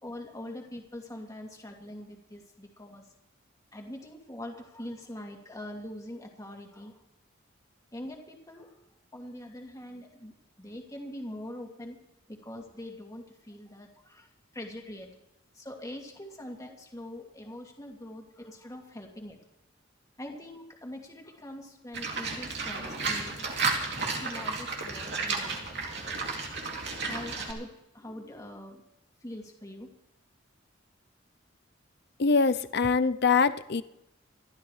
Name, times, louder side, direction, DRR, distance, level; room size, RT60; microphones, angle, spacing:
voice 1, 0.0-3.0 3.7-7.0 7.9-8.8 9.1-12.0 12.3-15.1 15.5-19.4 20.2-23.4 24.1-25.7 27.0-28.8 29.2-29.9, left 1 dB, 15° left, 1 dB, 2.3 m, -43 dB
Livestock farm animals working animals, 21.9-27.5, right 4 dB, 60° right, 2.8 m, -32 dB
voice 2, 32.2-33.8, left 4 dB, 55° left, 13 dB, 0.6 m, -24 dB
27.5 x 12.5 x 3.3 m, 0.85 s
head